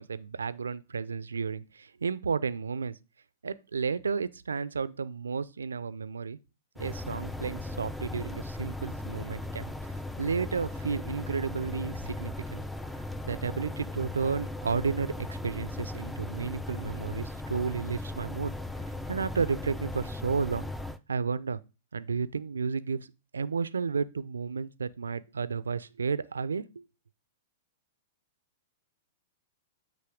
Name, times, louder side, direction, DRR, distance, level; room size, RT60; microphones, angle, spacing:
voice 1, 0.0-3.0 3.4-6.4 6.8-9.7 10.2-12.6 13.2-18.5 19.1-20.7 21.1-21.6 21.9-23.1 23.3-26.8, right 5 dB, 85° right, 0.4 m, -32 dB
sound 1, 6.8-21.0, left 2 dB, 5° left, 0.4 m, -38 dB
8.3 x 3.1 x 4.9 m
hypercardioid pair, 110°, 0 cm